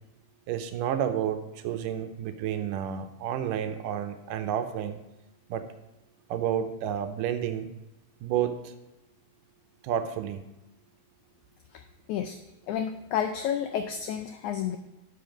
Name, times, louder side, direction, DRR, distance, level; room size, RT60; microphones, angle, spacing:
voice 1, 0.5-5.0 5.5-5.7 6.3-7.7 8.2-8.7 9.8-10.4, right 9 dB, 80° right, 9 dB, 2.1 m, -30 dB
voice 2, 12.7-14.8, left 9 dB, 85° left, 6 dB, 1.7 m, -30 dB
12.0 x 5.9 x 5.1 m, 0.95 s
omnidirectional pair, 4.0 m